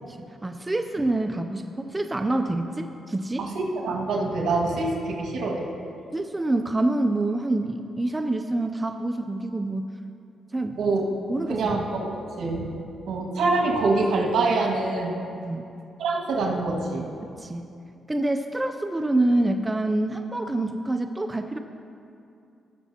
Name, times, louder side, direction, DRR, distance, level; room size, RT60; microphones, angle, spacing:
voice 1, 0.4-3.5 6.1-9.9 10.5-11.0 11.3-11.8 15.4-15.6 17.4-17.7 18.1-21.6, right 2 dB, 15° right, 6 dB, 0.5 m, -26 dB
voice 2, 3.4-5.7 10.8-11.0 11.5-12.7 13.1-15.2 16.0-17.1, right 3 dB, 80° right, -2 dB, 1.9 m, -25 dB
19.0 x 7.0 x 2.9 m, 2.6 s
cardioid pair, 100°, 0 cm